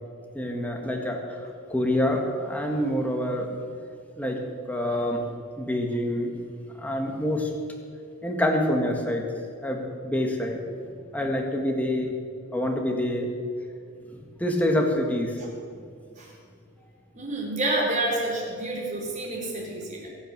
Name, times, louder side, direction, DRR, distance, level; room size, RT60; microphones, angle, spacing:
voice 1, 0.3-3.5 4.2-4.4 4.7-5.2 5.6-6.3 6.8-7.5 8.2-9.3 9.6-10.6 11.1-12.1 12.5-13.3 14.4-15.3, left 1 dB, 5° left, 1 dB, 1.8 m, -26 dB
voice 2, 17.1-20.1, right 2 dB, 35° right, -2 dB, 4.2 m, -29 dB
22.0 x 9.2 x 6.9 m, 2.2 s
head